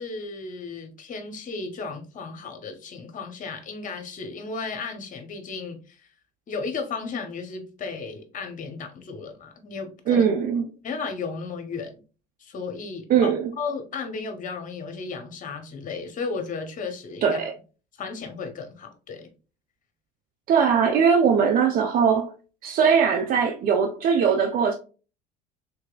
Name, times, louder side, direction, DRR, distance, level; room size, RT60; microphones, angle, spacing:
voice 1, 0.0-6.0 6.5-10.2 10.8-11.9 12.4-17.4 18.0-19.3, left 4 dB, 40° left, 1.0 m, -34 dB
voice 2, 10.1-10.7 13.1-13.5 17.2-17.5 20.5-22.3 22.6-24.7, right 6 dB, 45° right, 0.6 m, -20 dB
3.4 x 3.2 x 2.3 m
hypercardioid pair, 70°, 21 cm